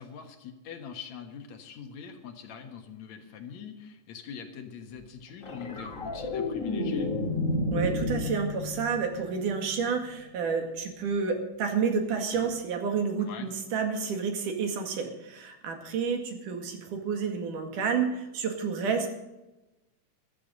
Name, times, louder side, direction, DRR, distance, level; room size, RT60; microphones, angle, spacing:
voice 1, 0.0-7.1 13.2-13.5, left 7 dB, 65° left, 5 dB, 2.5 m, -43 dB
sound 1, 5.4-9.9 12.3-12.5, left 2 dB, 30° left, 1.7 m, -31 dB
voice 2, 7.7-19.2, right 5 dB, 80° right, 4 dB, 3.5 m, -30 dB
14.0 x 12.5 x 5.2 m, 1.0 s
omnidirectional pair, 3.7 m